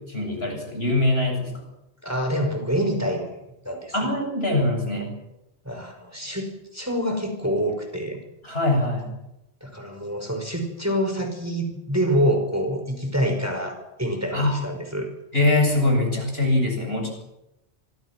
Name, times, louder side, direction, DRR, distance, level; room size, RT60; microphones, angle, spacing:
voice 1, 0.0-1.6 3.9-5.1 8.4-9.1 14.3-14.6 15.3-17.1, left 2 dB, 65° left, 3 dB, 7.7 m, -23 dB
voice 2, 2.0-3.4 3.6-4.1 5.6-8.2 9.6-15.1, equal, 15° right, 4 dB, 5.5 m, -26 dB
26.5 x 26.0 x 6.2 m, 0.87 s
omnidirectional pair, 1.1 m